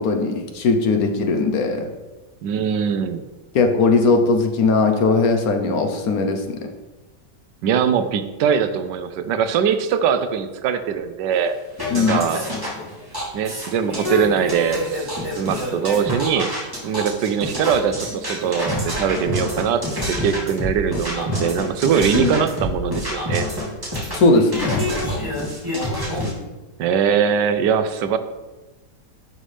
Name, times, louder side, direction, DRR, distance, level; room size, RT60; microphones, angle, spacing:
voice 1, 0.0-1.9 3.5-6.7 11.9-12.2 22.1-22.4 24.1-24.9, left 3 dB, 65° left, 6 dB, 1.2 m, -19 dB
voice 2, 2.4-3.2 7.6-11.6 11.9-12.5 13.3-16.5 16.8-23.5 26.8-28.2, right 7 dB, 85° right, 10 dB, 1.3 m, -22 dB
sound 1, 11.8-26.3, left 1 dB, 10° right, 2.7 m, -27 dB
11.5 x 5.6 x 3.3 m, 1.1 s
omnidirectional pair, 1.8 m